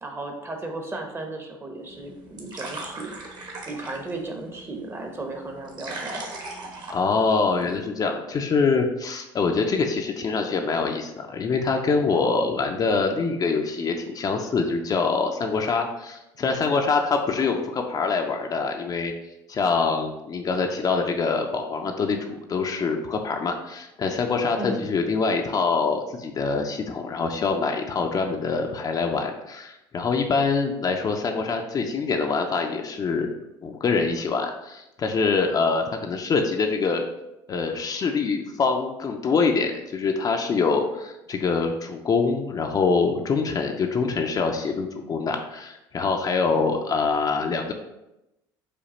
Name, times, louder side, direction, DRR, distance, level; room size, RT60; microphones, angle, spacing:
voice 1, 0.0-3.1 3.7-6.3 24.6-24.9, right 2 dB, 20° right, 3 dB, 0.9 m, -35 dB
sound 1, 1.8-7.8, right 2 dB, 40° right, 1.1 m, -39 dB
voice 2, 6.9-19.1 19.5-33.3 33.6-37.0 37.5-47.7, left 4 dB, 35° left, 3 dB, 0.5 m, -25 dB
5.0 x 2.3 x 4.2 m, 0.92 s
supercardioid pair, 85°, 11 cm